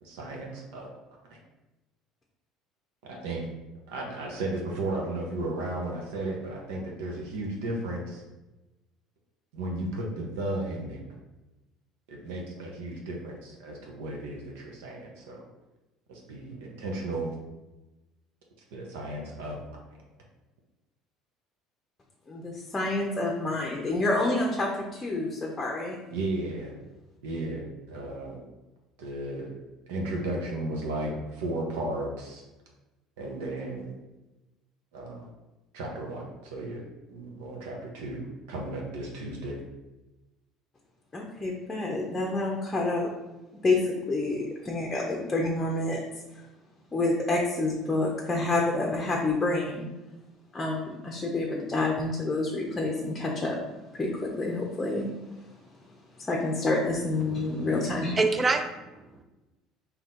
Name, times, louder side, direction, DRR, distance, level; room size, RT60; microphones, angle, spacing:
voice 1, 0.0-0.9 1.3-1.4 3.1-3.4 3.9-8.2 9.5-11.0 12.1-15.5 16.1-17.3 18.7-19.6 26.1-26.7 27.2-28.4 29.0-29.5 29.9-32.4 33.2-33.9 34.9-35.3 35.7-36.8 37.1-38.2 38.5-39.6, right 2 dB, 90° right, -1 dB, 0.9 m, -34 dB
voice 2, 22.3-26.0 41.1-43.1 43.6-46.0 46.3-46.4 46.9-49.9 50.5-53.6 53.9-55.1 56.2-58.2, left 2 dB, 20° left, -1 dB, 0.7 m, -28 dB
voice 3, 57.2-57.7 58.2-59.2, right 3 dB, 20° right, 7 dB, 0.4 m, -28 dB
4.2 x 2.8 x 3.7 m, 1.1 s
supercardioid pair, 110°, 0 cm